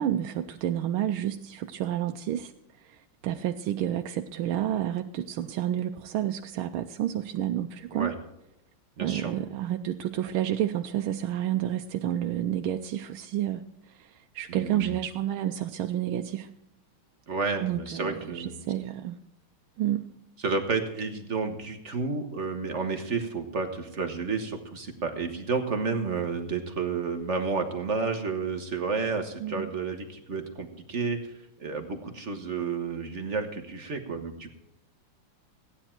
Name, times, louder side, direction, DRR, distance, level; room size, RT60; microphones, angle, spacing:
voice 1, 0.0-2.5 3.2-8.1 9.0-13.6 13.9-16.5 17.6-19.2 19.8-20.0 29.4-29.7, right 11 dB, 80° right, 5 dB, 1.5 m, -30 dB
voice 2, 9.0-9.3 14.5-15.0 17.3-18.6 20.4-34.6, right 4 dB, 40° right, 6 dB, 1.2 m, -31 dB
15.5 x 10.0 x 4.5 m, 0.85 s
omnidirectional pair, 2.3 m